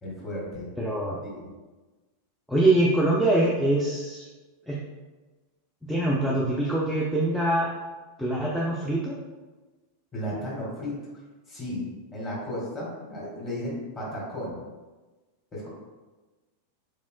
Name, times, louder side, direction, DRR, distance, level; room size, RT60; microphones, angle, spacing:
voice 1, 0.0-0.7 1.2-1.5 10.1-11.0 11.5-14.6 15.5-15.7, left 1 dB, 20° left, -6 dB, 1.4 m, -34 dB
voice 2, 0.8-1.2 2.5-4.3 4.7-4.8 5.9-7.7 8.2-9.1, right 1 dB, ahead, -5 dB, 0.4 m, -24 dB
3.6 x 3.0 x 2.2 m, 1.2 s
figure-of-eight pair, 90°, 0 cm